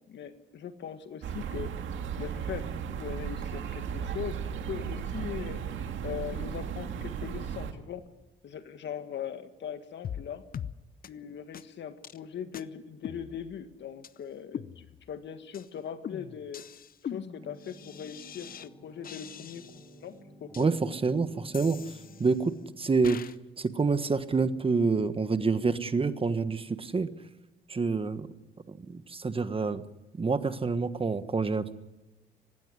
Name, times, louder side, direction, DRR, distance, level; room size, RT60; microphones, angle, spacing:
voice 1, 0.1-1.7 2.2-4.4 4.7-5.6 6.0-8.1 8.4-10.4 11.0-16.6 17.0-19.6 20.0-20.1 20.4-20.5, left 8 dB, 65° left, 9 dB, 1.9 m, -40 dB
sound 1, 1.2-7.7, right 7 dB, 75° right, 2.1 m, -35 dB
sound 2, 10.0-10.3 10.5-10.7 11.0-11.1 11.5-11.6 12.0-12.2 12.5-12.6 13.0-13.7 14.0-14.1 14.5-15.2 15.5-15.7 16.0-18.7 19.0-20.0 20.5-20.7 21.5-22.5 23.0-23.4, left 8 dB, 45° left, 0.7 m, -42 dB
sound 3, 17.3-23.2, right 1 dB, 15° left, 6.7 m, -53 dB
voice 2, 20.6-27.1 27.7-28.3 28.7-29.8 30.2-31.7, right 4 dB, 30° right, 11 dB, 1.3 m, -28 dB
20.0 x 16.0 x 9.9 m, 1.1 s
cardioid pair, 90°, 20 cm